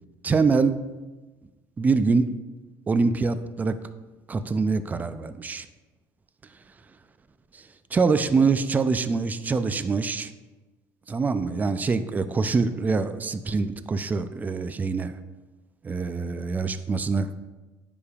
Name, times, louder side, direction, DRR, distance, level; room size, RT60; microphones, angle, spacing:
voice 1, 0.2-0.8 1.8-2.3 2.9-3.8 4.3-5.7 7.9-10.3 11.1-15.1 15.8-17.3, right 4 dB, 20° right, 12 dB, 0.4 m, -24 dB
9.6 x 5.1 x 2.4 m, 1.2 s
supercardioid pair, 105°, 8 cm